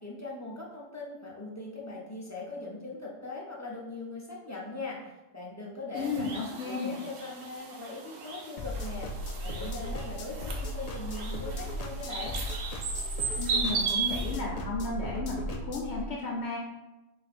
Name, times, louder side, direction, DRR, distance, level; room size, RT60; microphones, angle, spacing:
voice 1, 0.0-12.4, left 3 dB, 20° left, -5 dB, 0.6 m, -40 dB
voice 2, 5.9-7.0 13.4-16.6, left 3 dB, 65° left, -1 dB, 0.8 m, -34 dB
sound 1, 6.0-14.4, right 5 dB, 85° right, 1.1 m, -36 dB
sound 2, 8.6-15.9, equal, 85° left, 0.3 m, -36 dB
4.2 x 2.5 x 4.1 m, 1.0 s
omnidirectional pair, 1.3 m